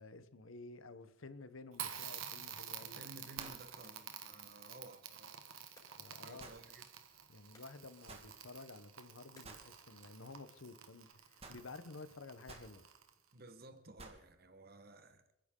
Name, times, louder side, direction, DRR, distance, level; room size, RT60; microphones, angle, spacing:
voice 1, 0.0-3.0 6.0-6.5 7.3-12.9, left 3 dB, 80° left, 1.0 m, -52 dB
Crackle, 1.7-13.3, right 9 dB, 85° right, 1.6 m, -50 dB
sound 1, 2.8-11.1, left 1 dB, 15° left, 6.1 m, -71 dB
voice 2, 2.8-5.4 6.2-6.8 13.3-15.3, right 2 dB, 50° right, 1.3 m, -55 dB
sound 2, 3.4-3.7 6.4-6.6 8.1-8.3 9.4-9.7 11.4-11.6 12.5-12.7 14.0-14.2, right 3 dB, 30° right, 1.8 m, -53 dB
29.5 x 10.5 x 3.8 m
head